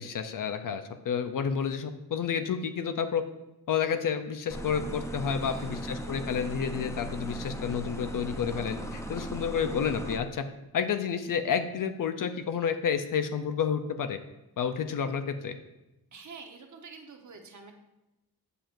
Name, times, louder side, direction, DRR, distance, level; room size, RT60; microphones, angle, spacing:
voice 1, 0.0-3.2 3.7-10.4 10.7-14.2 14.6-15.6, left 7 dB, 55° left, 8 dB, 0.6 m, -30 dB
sound 1, 4.5-10.2, right 1 dB, 10° left, 0.5 m, -38 dB
voice 2, 5.4-6.0 16.1-17.7, right 5 dB, 50° right, 4 dB, 1.0 m, -47 dB
7.5 x 6.8 x 2.6 m, 0.96 s
wide cardioid pair, 115°, 38 cm